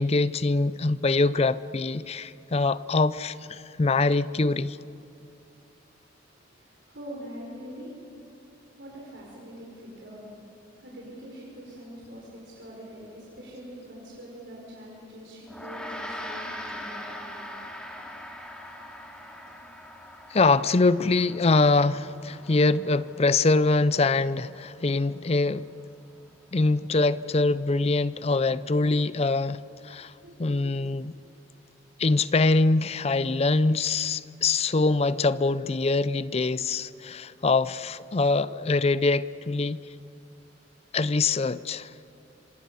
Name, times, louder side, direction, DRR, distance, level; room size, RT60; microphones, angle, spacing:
voice 1, 0.0-4.8 20.3-25.7 26.5-30.1 30.4-31.1 32.0-39.8 40.9-41.9, left 3 dB, 30° left, 17 dB, 0.5 m, -24 dB
voice 2, 6.3-17.6 30.2-30.6, equal, 65° right, -4 dB, 5.1 m, -44 dB
Gong, 15.5-25.0, left 1 dB, 5° left, 2.6 m, -42 dB
27.0 x 25.5 x 6.9 m, 2.8 s
head